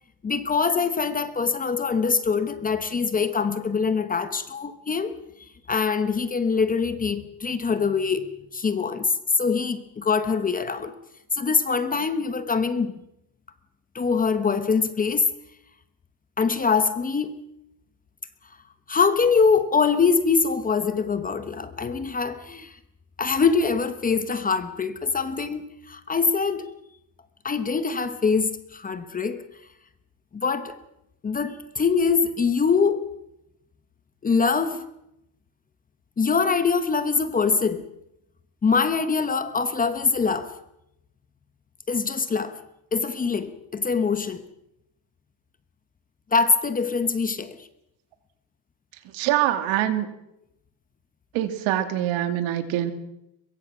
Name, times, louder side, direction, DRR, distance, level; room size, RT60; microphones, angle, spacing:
voice 1, 0.2-5.1 5.7-10.9 11.3-12.9 13.9-15.3 16.4-17.3 18.9-22.7 23.2-26.6 27.4-29.4 30.3-30.7 31.2-33.0 34.2-34.9 36.2-37.9 38.6-40.5 41.9-42.6 42.9-44.4 46.3-47.6, left 5 dB, 15° left, 1.0 m, -23 dB
voice 2, 49.0-50.1 51.3-52.9, right 12 dB, 70° right, 2.7 m, -24 dB
24.0 x 22.5 x 6.1 m
cardioid pair, 170°, 49 cm